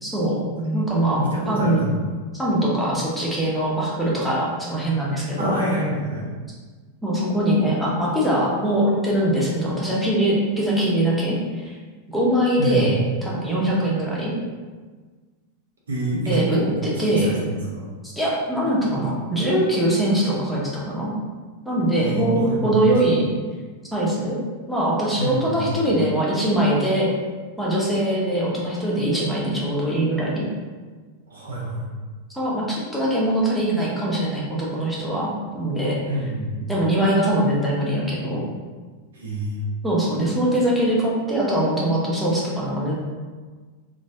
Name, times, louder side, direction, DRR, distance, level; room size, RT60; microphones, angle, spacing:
voice 1, 0.0-0.5 0.7-1.8 2.3-5.6 7.0-11.8 12.1-14.3 16.3-17.3 18.0-21.1 21.7-23.2 23.9-24.4 24.7-27.1 27.6-30.5 32.4-36.0 36.7-38.4 39.8-43.1, right 1 dB, ahead, -7 dB, 0.8 m, -22 dB
voice 2, 0.6-2.0 5.4-6.2 12.6-12.9 15.9-17.9 22.0-23.1 25.2-25.8 31.3-31.9 36.1-36.7 39.1-39.6, right 1 dB, 65° right, -5 dB, 0.8 m, -27 dB
3.0 x 2.2 x 2.7 m, 1.4 s
figure-of-eight pair, 90°, 0 cm